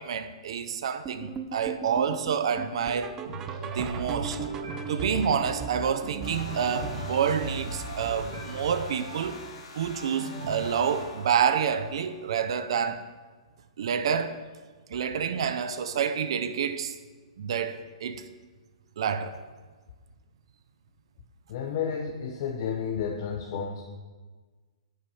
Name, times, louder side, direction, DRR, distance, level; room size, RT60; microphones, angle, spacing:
voice 1, 0.0-3.2 3.6-4.4 4.9-9.4 9.8-13.0 13.8-14.4 14.9-17.0 17.4-18.2 19.0-19.4, right 7 dB, 60° right, 0.6 m, -28 dB
sound 1, 1.0-10.2 10.5-10.8 11.1-11.2 11.7-11.8 12.3-12.4, right 5 dB, 15° right, 0.4 m, -40 dB
sound 2, 3.2-11.2, right 3 dB, 85° right, 2.3 m, -38 dB
sound 3, 6.2-12.4, left 3 dB, 65° left, 2.1 m, -47 dB
voice 2, 21.5-23.8, left 7 dB, 40° left, 0.7 m, -31 dB
9.9 x 5.7 x 5.5 m
hypercardioid pair, 165°, 3 cm